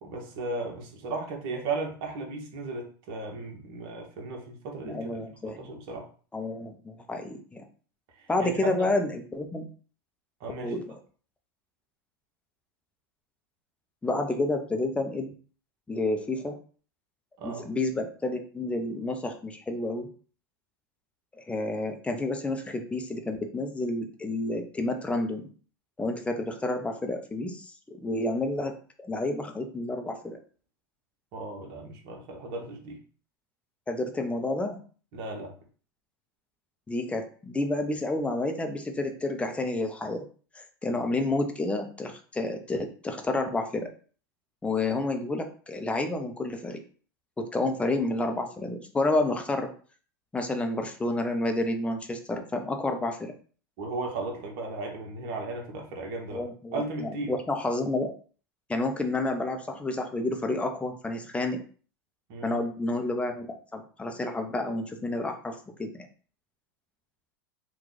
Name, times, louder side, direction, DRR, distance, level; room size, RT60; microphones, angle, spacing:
voice 1, 0.0-5.1 5.4-6.0 8.4-8.9 10.4-10.7 17.4-17.7 31.3-33.0 35.1-35.5 53.8-56.4 56.7-57.3 62.3-62.6, right 3 dB, 55° right, 1 dB, 1.1 m, -35 dB
voice 2, 4.8-5.6 6.3-7.6 8.3-9.7 10.6-10.9 14.0-15.3 15.9-16.6 17.4-20.1 21.5-25.5 26.0-30.4 33.9-34.8 36.9-40.3 40.5-43.9 44.6-46.8 47.4-49.7 50.3-53.3 56.3-58.1 58.7-61.6 62.4-63.5 63.7-66.1, left 2 dB, 10° left, 5 dB, 0.6 m, -30 dB
2.9 x 2.3 x 3.9 m, 0.41 s
hypercardioid pair, 95°, 12 cm